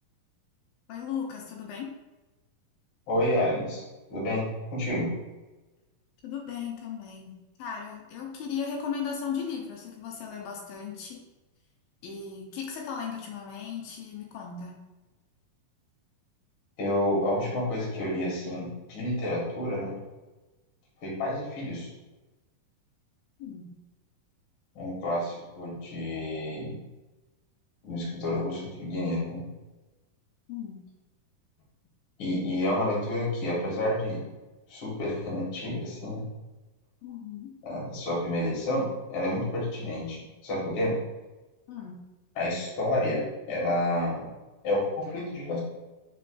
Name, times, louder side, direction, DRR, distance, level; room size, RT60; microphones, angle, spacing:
voice 1, 0.9-1.9 6.2-7.3 7.6-11.2 12.0-14.8 23.4-23.7 30.5-30.8 37.0-37.5 41.7-42.0, left 7 dB, 85° left, 0 dB, 2.5 m, -36 dB
voice 2, 3.1-3.8 4.1-5.1 16.8-19.9 21.0-21.9 24.8-26.8 27.8-29.5 32.2-34.2 34.7-36.2 37.6-40.9 42.4-44.3 44.6-45.6, left 1 dB, 50° left, -5 dB, 1.8 m, -29 dB
5.5 x 3.7 x 2.3 m, 1.1 s
omnidirectional pair, 4.1 m